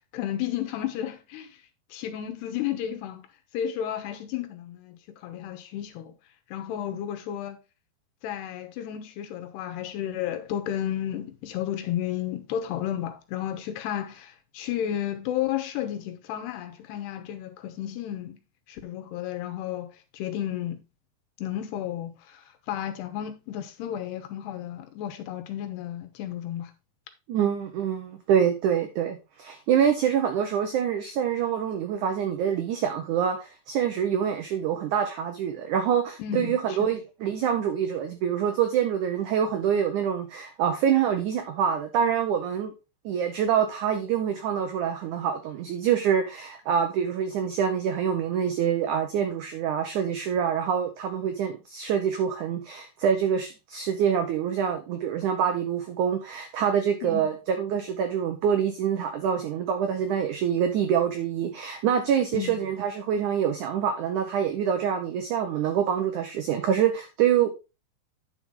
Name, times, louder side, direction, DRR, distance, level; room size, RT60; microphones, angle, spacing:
voice 1, 0.1-1.5 1.9-3.3 3.5-6.1 6.5-7.6 8.2-18.4 18.7-20.8 21.4-26.7 36.2-36.6 57.0-57.2 62.3-62.6, left 11 dB, 85° left, 3.1 m, -32 dB
voice 2, 27.3-42.7 43.1-67.5, right 8 dB, 85° right, 1.7 m, -26 dB
9.4 x 5.7 x 3.7 m
omnidirectional pair, 4.7 m